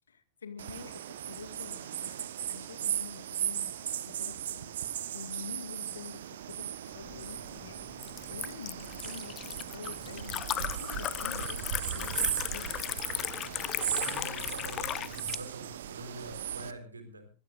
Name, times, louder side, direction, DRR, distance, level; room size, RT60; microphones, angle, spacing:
voice 1, 0.1-12.8, left 6 dB, 70° left, 2.0 m, -48 dB
sound 1, 0.6-16.7, right 10 dB, 60° right, 1.2 m, -37 dB
Liquid, 7.0-15.4, left 12 dB, 30° left, 0.7 m, -37 dB
voice 2, 13.8-17.3, right 2 dB, 75° right, 4.0 m, -45 dB
22.0 x 16.5 x 2.6 m
figure-of-eight pair, 90°, 0 cm